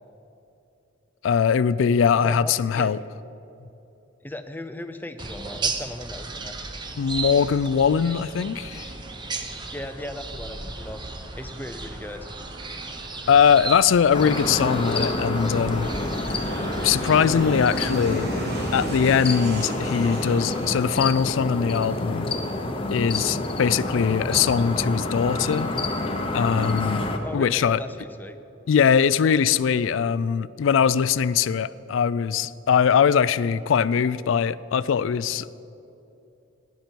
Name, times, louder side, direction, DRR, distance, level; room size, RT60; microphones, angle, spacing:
voice 1, 1.2-3.0 7.0-8.9 13.3-15.9 16.8-18.3 18.7-22.3 22.9-25.7 26.3-27.0 27.3-27.8 28.7-35.6, left 7 dB, 75° left, 17 dB, 0.4 m, -21 dB
voice 2, 2.2-2.9 4.2-6.6 9.7-11.0 11.4-12.3 27.2-28.4, left 1 dB, 10° left, 8 dB, 0.6 m, -37 dB
sound 1, 5.2-17.4, right 3 dB, 25° right, 0.7 m, -35 dB
Aircraft, 9.4-22.3, equal, 55° right, 1.7 m, -37 dB
sound 2, 14.1-27.2, left 2 dB, 25° left, 0.9 m, -28 dB
16.0 x 10.5 x 4.5 m, 2.8 s
head